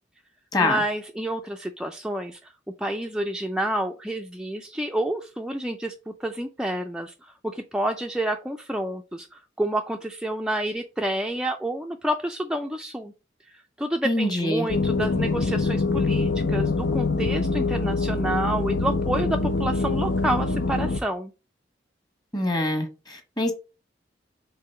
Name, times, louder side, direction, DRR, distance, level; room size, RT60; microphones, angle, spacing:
voice 1, 0.6-2.5 2.8-13.1 13.5-21.3, right 1 dB, 5° right, 0.4 m, -29 dB
voice 2, 14.0-14.7 22.3-23.5, left 2 dB, 25° left, 1.4 m, -25 dB
sound 1, 14.7-21.0, left 3 dB, 70° left, 0.6 m, -24 dB
4.8 x 3.8 x 5.6 m
head